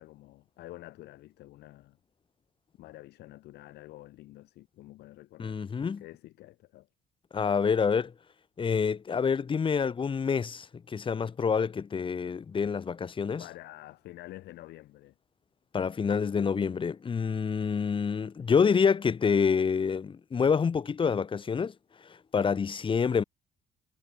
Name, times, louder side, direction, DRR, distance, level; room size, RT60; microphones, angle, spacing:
voice 1, 0.0-2.0 2.8-5.6 6.0-6.9 13.4-15.2, left 16 dB, 75° left, 1.8 m, -48 dB
voice 2, 5.4-6.0 7.3-8.1 8.6-13.4 15.7-21.7 22.3-23.2, left 6 dB, 30° left, 1.5 m, -27 dB
cardioid pair, 110°, 17 cm